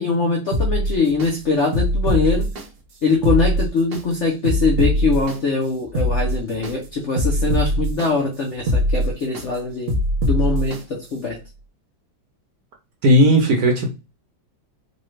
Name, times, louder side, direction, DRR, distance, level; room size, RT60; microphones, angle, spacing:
voice 1, 0.0-2.4 3.0-9.9 10.2-11.4, left 4 dB, 65° left, 0 dB, 0.7 m, -22 dB
sound 1, 0.5-1.3 1.7-2.6 3.1-4.0 4.4-5.4 5.8-6.7 7.2-8.1 8.5-9.4 9.9-10.8 11.2-11.3, equal, 85° right, 0.5 m, -21 dB
voice 2, 13.0-13.9, equal, 60° right, 2 dB, 1.1 m, -15 dB
4.1 x 2.3 x 3.1 m, 0.28 s
omnidirectional pair, 2.1 m